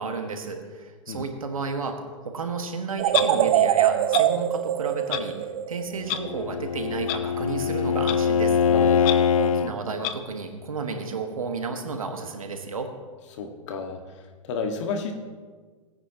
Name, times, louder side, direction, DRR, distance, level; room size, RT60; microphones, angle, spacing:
voice 1, 0.0-5.3 5.7-8.6 9.3-12.9, right 4 dB, 90° right, 5 dB, 1.5 m, -32 dB
sound 1, 3.0-6.2, right 11 dB, 40° right, 0.7 m, -23 dB
Clock, 3.1-3.3 4.1-4.2 5.1-5.2 6.1-6.2 7.1-7.2 8.1-8.2 9.0-9.1 10.0-10.1, left 13 dB, 40° left, 0.7 m, -27 dB
Bowed string instrument, 6.0-9.7, left 7 dB, 85° left, 0.5 m, -23 dB
voice 2, 8.7-9.1 13.4-14.0 14.5-15.1, left 4 dB, 60° left, 4 dB, 1.6 m, -31 dB
18.0 x 9.7 x 2.9 m, 1.5 s
hypercardioid pair, 115°, 17 cm